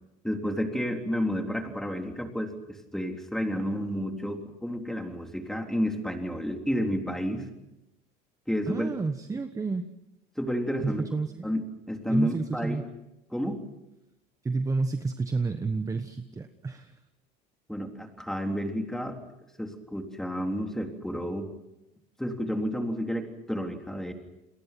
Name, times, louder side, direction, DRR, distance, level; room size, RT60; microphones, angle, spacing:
voice 1, 0.2-7.5 8.5-8.9 10.4-11.0 11.4-12.8 13.3-13.6 17.7-19.2 19.6-21.5 22.2-24.1, equal, ahead, 3 dB, 3.6 m, -31 dB
voice 2, 8.7-9.9 10.8-11.5 12.1-12.8 14.4-17.0, right 3 dB, 15° right, 8 dB, 1.2 m, -30 dB
29.5 x 22.0 x 6.1 m, 0.91 s
cardioid pair, 115°, 19 cm